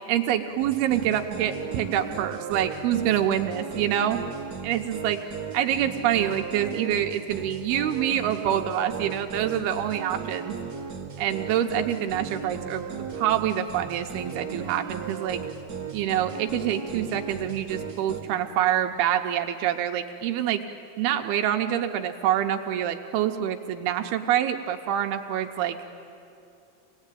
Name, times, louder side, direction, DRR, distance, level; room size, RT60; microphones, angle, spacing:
voice 1, 0.1-4.2 4.6-5.2 5.5-10.6 11.2-15.4 15.9-20.6 21.0-25.8, right 10 dB, 80° right, 6 dB, 2.7 m, -26 dB
sound 1, 0.6-18.2, right 6 dB, 30° right, 2.2 m, -36 dB
26.0 x 19.5 x 9.1 m, 2.6 s
omnidirectional pair, 4.6 m